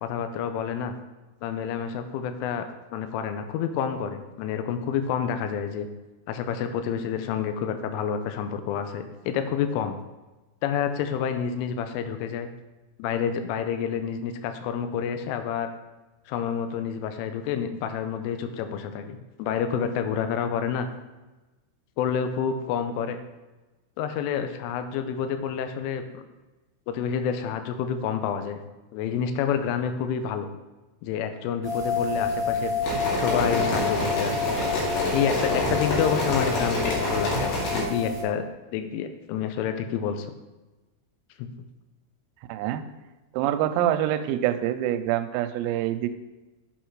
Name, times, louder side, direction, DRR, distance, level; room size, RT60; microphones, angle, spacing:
voice 1, 0.0-0.9 1.4-2.7 2.9-5.9 6.3-10.0 10.6-12.5 13.0-15.7 16.3-20.9 22.0-23.2 24.0-26.2 26.9-28.6 28.9-30.5 31.0-34.4 35.1-38.4 38.7-40.3 41.4-41.5, left 7 dB, 80° left, 8 dB, 3.0 m, -29 dB
sound 1, 31.6-38.2, left 4 dB, 35° right, 2.0 m, -29 dB
sound 2, 32.8-37.8, left 1 dB, 65° left, 4.3 m, -27 dB
voice 2, 42.5-42.8 43.3-46.1, right 12 dB, 90° right, 10 dB, 3.3 m, -25 dB
8.0 x 6.3 x 4.6 m, 1.1 s
omnidirectional pair, 6.0 m